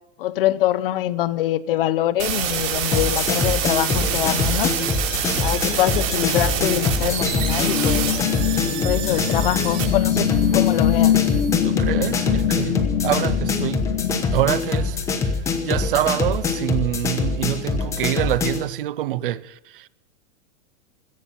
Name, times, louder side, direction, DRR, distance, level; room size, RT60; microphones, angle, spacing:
voice 1, 0.2-4.8 5.4-8.0 8.6-11.2, left 13 dB, 40° left, 0.7 m, -24 dB
sound 1, 2.2-11.5, right 9 dB, 65° right, 4.6 m, -27 dB
sound 2, 2.9-18.7, left 4 dB, 5° left, 0.7 m, -24 dB
sound 3, 6.4-15.4, left 10 dB, 80° left, 1.6 m, -24 dB
voice 2, 11.6-14.0 14.3-15.4 15.6-19.9, right 14 dB, 40° right, 0.5 m, -26 dB
17.0 x 13.5 x 5.6 m
supercardioid pair, 165°, 42 cm